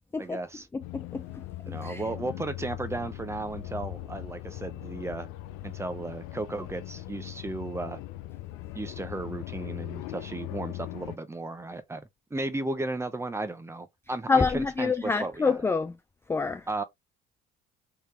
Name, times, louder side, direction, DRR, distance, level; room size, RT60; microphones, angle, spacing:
voice 1, 0.2-0.7 1.6-5.3 5.6-8.0 8.7-15.6 16.7-16.8, right 2 dB, 10° right, 0.7 m, -35 dB
voice 2, 0.7-1.2 1.7-2.0 14.3-15.9 16.3-16.6, left 4 dB, 10° left, 0.3 m, -27 dB
sound 1, 0.8-11.2, left 16 dB, 85° left, 0.5 m, -40 dB
3.7 x 2.6 x 3.2 m
supercardioid pair, 85°, 21 cm